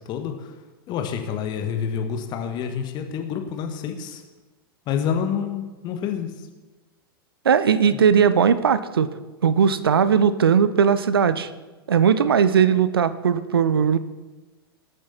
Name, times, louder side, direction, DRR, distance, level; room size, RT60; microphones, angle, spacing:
voice 1, 0.0-0.5 0.9-4.2 4.9-6.3, left 7 dB, 35° left, 5 dB, 1.7 m, -28 dB
voice 2, 7.4-9.1 9.4-11.5 11.9-14.0, right 7 dB, 70° right, 15 dB, 0.7 m, -18 dB
19.5 x 8.9 x 4.3 m, 1.2 s
figure-of-eight pair, 90°, 13 cm